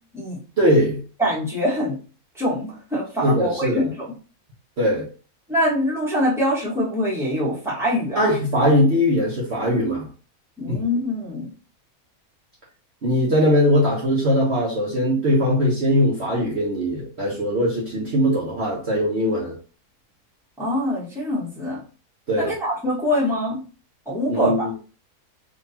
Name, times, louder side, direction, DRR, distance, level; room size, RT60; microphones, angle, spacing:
voice 1, 0.6-1.0 3.2-3.9 4.8-5.1 8.1-10.1 10.7-10.8 13.0-19.6 22.3-22.5 24.3-24.7, equal, 50° right, -5 dB, 1.2 m, -20 dB
voice 2, 1.2-2.0 2.3-4.1 5.5-8.2 10.6-11.5 20.6-21.8 22.4-23.6 24.0-24.7, equal, ahead, -7 dB, 1.5 m, -24 dB
3.8 x 2.9 x 2.7 m, 0.37 s
omnidirectional pair, 1.6 m